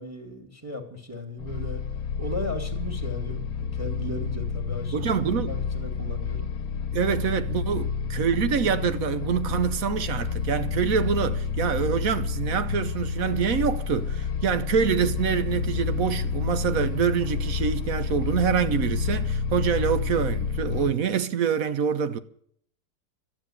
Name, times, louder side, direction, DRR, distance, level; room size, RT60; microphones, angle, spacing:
voice 1, 0.0-1.8 2.2-5.1 5.4-6.5, left 1 dB, 10° right, 2.2 m, -36 dB
sound 1, 1.4-20.9, left 5 dB, 65° left, 1.3 m, -29 dB
voice 2, 4.9-5.5 6.9-22.2, right 7 dB, 60° right, 1.2 m, -26 dB
12.5 x 8.8 x 10.0 m
omnidirectional pair, 1.8 m